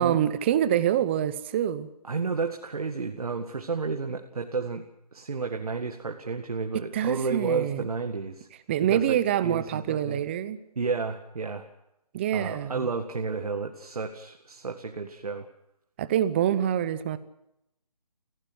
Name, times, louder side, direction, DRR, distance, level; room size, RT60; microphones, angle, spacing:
voice 1, 0.0-1.9 6.9-7.8 8.7-10.6 12.1-12.9 16.0-17.2, right 10 dB, 20° right, 14 dB, 0.8 m, -26 dB
voice 2, 2.0-4.8 5.1-8.5 8.9-9.2 9.4-10.2 10.8-11.7 12.3-15.5, right 4 dB, 65° right, 4 dB, 2.0 m, -31 dB
25.0 x 16.5 x 7.8 m, 0.82 s
figure-of-eight pair, 160°, 20 cm